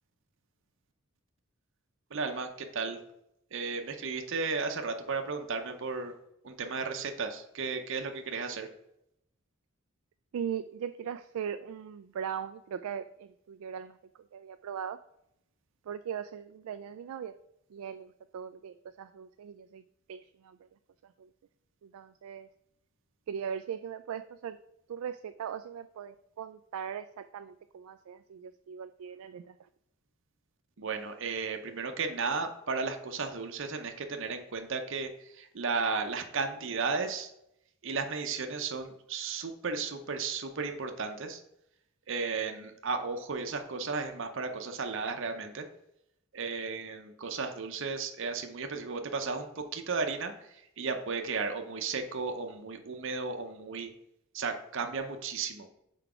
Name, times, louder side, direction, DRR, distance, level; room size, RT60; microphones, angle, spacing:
voice 1, 2.1-3.0 3.5-6.1 6.4-8.7 30.8-37.3 37.8-41.4 42.1-45.6 46.3-53.9 54.3-55.7, right 4 dB, 60° right, 5 dB, 0.7 m, -34 dB
voice 2, 10.3-14.0 14.3-15.0 15.9-17.3 17.7-19.8 20.1-20.6 21.0-21.3 21.8-22.5 23.3-24.6 24.9-29.5, right 8 dB, 80° right, 10 dB, 0.3 m, -39 dB
5.9 x 4.6 x 4.9 m, 0.80 s
head